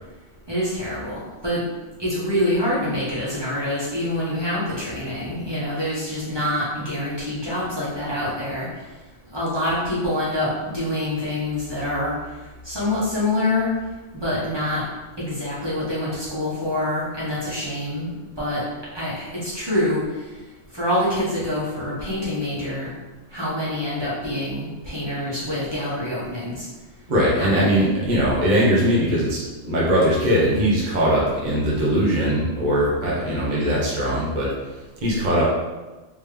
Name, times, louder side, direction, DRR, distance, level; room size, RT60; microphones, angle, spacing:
voice 1, 0.5-1.6 2.0-8.7 9.3-12.1 12.6-13.7 14.1-14.8 15.2-18.1 18.4-18.7 18.9-20.0 20.7-22.9 23.3-26.7 27.3-27.9, left 1 dB, 20° right, -9 dB, 1.2 m, -26 dB
voice 2, 27.1-29.4 29.6-34.5 35.0-35.4, equal, 40° right, -6 dB, 0.9 m, -20 dB
3.6 x 3.1 x 3.3 m, 1.2 s
omnidirectional pair, 1.3 m